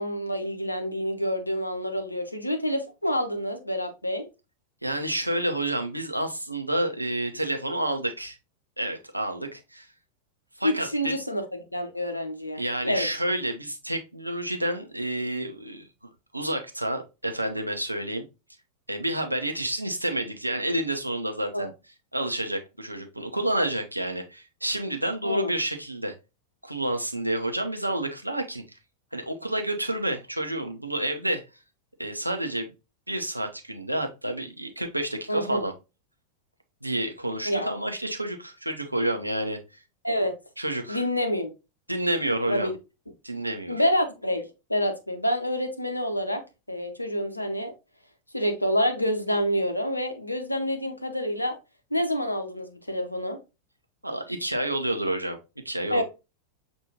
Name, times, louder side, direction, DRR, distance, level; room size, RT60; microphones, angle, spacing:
voice 1, 0.0-4.3 10.6-11.4 11.7-13.1 21.5-21.7 25.2-25.5 35.3-35.6 37.5-37.7 40.0-40.3 40.9-41.5 42.5-42.7 43.7-44.4 44.7-46.4 46.7-47.7 48.3-51.6 51.9-53.4 55.9-56.0, equal, 85° left, 0.7 m, -27 dB
voice 2, 4.8-8.4 8.8-9.9 10.6-11.1 12.6-18.2 18.9-21.7 22.1-26.1 26.6-28.8 29.1-31.4 32.0-32.7 33.1-35.7 36.8-39.8 40.6-41.0 41.9-42.7 43.2-43.8 54.0-55.4 55.6-56.0, right 1 dB, 85° right, 0.7 m, -29 dB
6.5 x 2.6 x 2.8 m
figure-of-eight pair, 90°, 0 cm